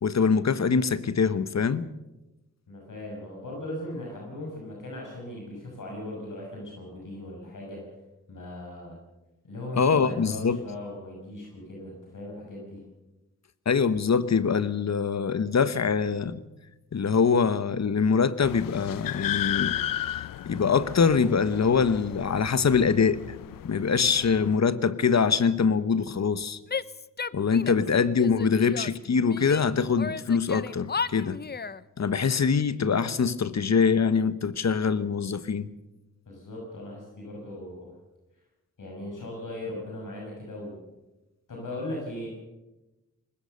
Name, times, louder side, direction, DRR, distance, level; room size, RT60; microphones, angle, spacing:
voice 1, 0.0-1.9 9.8-10.6 13.6-16.4 16.9-19.8 20.5-23.4 23.6-26.6 27.3-31.4 32.0-35.7, left 5 dB, 55° left, 1.1 m, -24 dB
voice 2, 2.7-7.8 8.3-9.0 9.4-12.8 27.5-27.8 36.3-37.9 38.8-40.8 41.5-42.3, left 1 dB, 70° left, 6.5 m, -38 dB
sound 1, 18.4-24.6, left 12 dB, 85° left, 0.6 m, -34 dB
Female speech woman speaking / Yell, 26.7-27.9 28.2-29.6 30.0-31.8, left 5 dB, 30° left, 0.7 m, -34 dB
20.5 x 19.5 x 6.8 m
cardioid pair, 55°, 32 cm